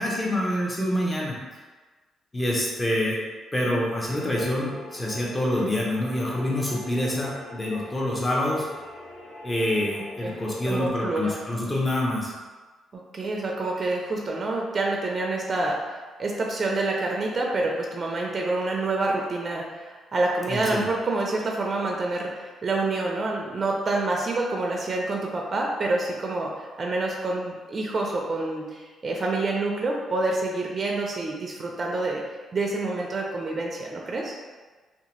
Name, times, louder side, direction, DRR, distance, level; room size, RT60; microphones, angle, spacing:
voice 1, 0.0-1.3 2.3-3.2 3.5-8.7 9.4-12.3 20.5-20.9, left 1 dB, 15° left, -4 dB, 0.7 m, -26 dB
sound 1, 3.9-10.9, left 1 dB, 75° left, 0.8 m, -42 dB
voice 2, 10.2-11.3 13.1-15.8 16.2-32.2 32.5-34.3, right 2 dB, 35° right, -1 dB, 0.4 m, -27 dB
2.7 x 2.1 x 3.0 m, 1.3 s
cardioid pair, 90°, 0 cm